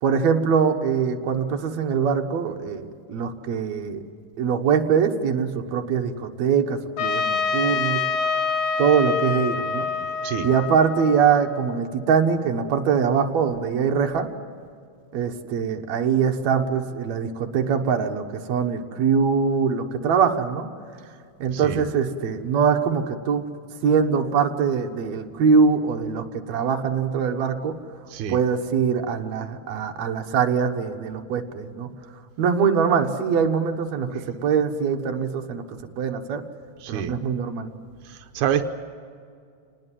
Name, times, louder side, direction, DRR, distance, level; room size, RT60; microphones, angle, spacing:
voice 1, 0.0-4.0 4.4-8.0 8.8-9.9 10.4-14.3 15.1-20.7 21.4-23.4 23.8-27.7 28.3-31.9 32.4-35.6 36.0-36.4 36.9-37.7, right 6 dB, 70° right, 4 dB, 2.5 m, -23 dB
Trumpet, 7.0-11.8, left 5 dB, 80° left, 2.9 m, -26 dB
voice 2, 21.5-21.8 28.1-28.4 36.8-37.1 38.4-38.7, right 9 dB, 90° right, 7 dB, 2.4 m, -26 dB
28.0 x 19.5 x 7.5 m, 2.3 s
omnidirectional pair, 3.4 m